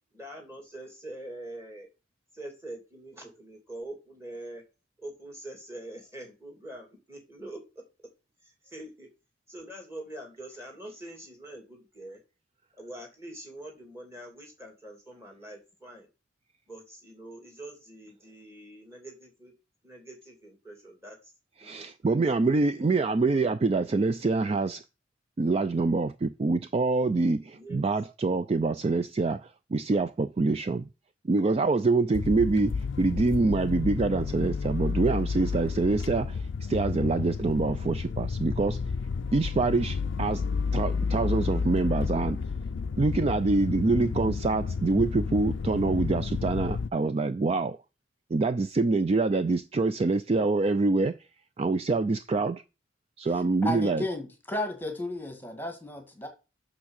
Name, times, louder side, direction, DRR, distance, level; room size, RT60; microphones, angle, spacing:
voice 1, 0.1-1.9 2.3-4.6 5.0-7.6 8.4-9.1 9.5-12.2 12.8-16.1 16.7-19.5 19.8-21.3 21.6-22.5 27.5-27.8, right 1 dB, 15° right, 2.7 m, -44 dB
voice 2, 21.6-24.8 25.4-30.9 31.2-38.8 39.3-40.4 40.7-42.4 43.0-47.8 48.3-51.2 51.6-52.6 53.2-54.0, right 3 dB, 30° right, 0.3 m, -25 dB
sound 1, 32.1-46.9, left 5 dB, 70° left, 0.4 m, -31 dB
voice 3, 53.2-56.3, left 1 dB, 10° left, 1.6 m, -34 dB
6.4 x 6.0 x 6.5 m
head